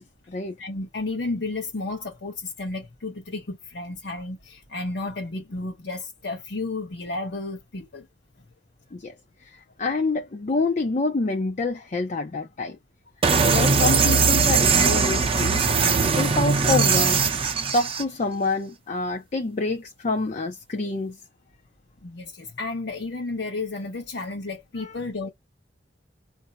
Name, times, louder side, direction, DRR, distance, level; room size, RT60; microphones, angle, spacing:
voice 1, 0.0-0.6 8.9-9.1 9.4-12.8 13.4-17.2 17.7-21.2 24.8-24.9, left 3 dB, 45° left, 0.5 m, -27 dB
voice 2, 0.6-8.1 13.3-13.6 22.0-25.3, left 3 dB, 70° left, 0.8 m, -32 dB
sound 1, 13.2-18.0, right 5 dB, 30° right, 0.6 m, -20 dB
2.6 x 2.0 x 4.0 m
head